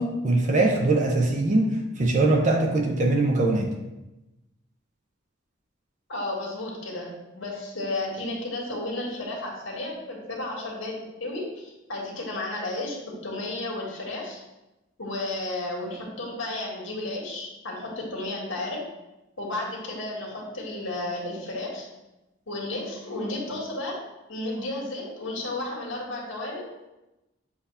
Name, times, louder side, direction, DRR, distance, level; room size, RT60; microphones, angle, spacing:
voice 1, 0.0-1.7 2.0-3.7, right 2 dB, 40° right, 2 dB, 0.6 m, -22 dB
voice 2, 6.1-10.9 11.2-13.0 13.2-14.4 15.0-18.8 19.4-21.9 22.5-24.0 24.3-26.9, left 2 dB, 85° left, -2 dB, 1.7 m, -33 dB
7.1 x 2.9 x 5.3 m, 0.99 s
head